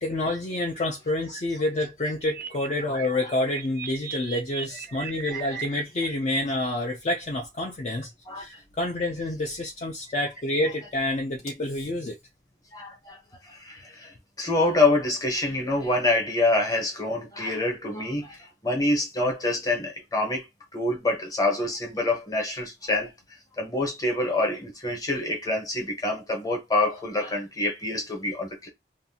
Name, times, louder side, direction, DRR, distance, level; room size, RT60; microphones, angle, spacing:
voice 1, 0.0-8.1 8.4-12.1, left 1 dB, 40° left, 0.4 m, -28 dB
sound 1, 2.2-5.7, right 9 dB, 50° right, 0.3 m, -37 dB
voice 2, 12.7-13.2 13.5-14.1 14.4-20.5 20.7-23.1 23.6-28.7, left 2 dB, 20° left, 0.9 m, -26 dB
2.6 x 2.3 x 2.7 m
head